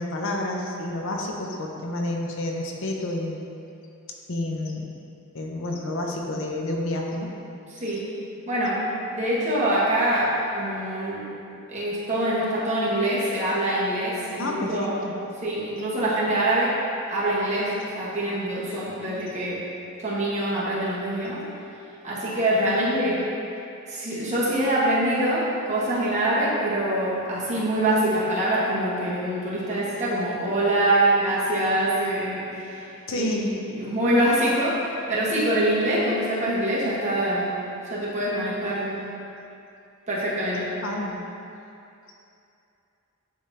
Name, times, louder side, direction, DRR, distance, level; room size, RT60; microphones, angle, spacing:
voice 1, 0.0-3.4 4.3-4.9 5.3-7.3 14.4-15.1 22.7-23.2 33.1-33.6 40.8-41.2, left 1 dB, 65° left, 0 dB, 0.6 m, -29 dB
voice 2, 7.7-8.1 8.5-8.9 9.1-11.3 11.7-15.0 15.4-16.8 17.1-19.6 20.0-21.4 22.0-23.2 23.9-33.4 33.7-37.6 37.9-39.0 40.1-40.7, right 1 dB, 35° right, -8 dB, 1.4 m, -24 dB
9.7 x 3.5 x 2.8 m, 2.7 s
head